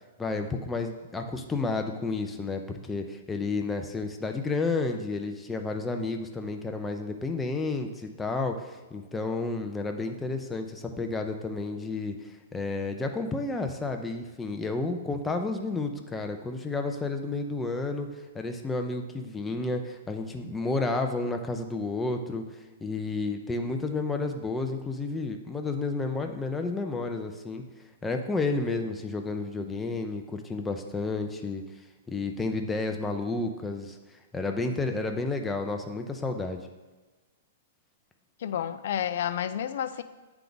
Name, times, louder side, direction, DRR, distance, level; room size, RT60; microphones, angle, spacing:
voice 1, 0.2-18.1 18.3-27.6 28.0-31.6 32.1-34.0 34.3-36.6, left 3 dB, 10° left, 4 dB, 0.5 m, -31 dB
voice 2, 38.4-40.0, left 9 dB, 65° left, 13 dB, 0.4 m, -30 dB
9.1 x 3.5 x 3.9 m, 1.2 s
hypercardioid pair, 145°, 0 cm